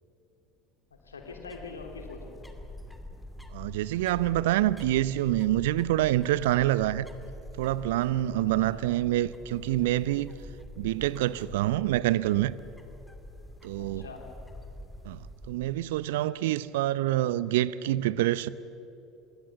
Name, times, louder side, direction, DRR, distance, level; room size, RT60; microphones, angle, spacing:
voice 1, 0.9-2.5 8.4-8.8 13.8-14.2 16.7-17.0, left 4 dB, 80° left, 3.0 m, -44 dB
sound 1, 0.9-16.2, left 1 dB, 5° left, 2.5 m, -46 dB
voice 2, 3.5-7.1 7.6-10.3 10.8-12.5 13.6-14.0 15.0-15.2 15.5-18.5, right 14 dB, 65° right, 0.6 m, -26 dB
25.5 x 21.0 x 7.0 m
figure-of-eight pair, 70°, 0 cm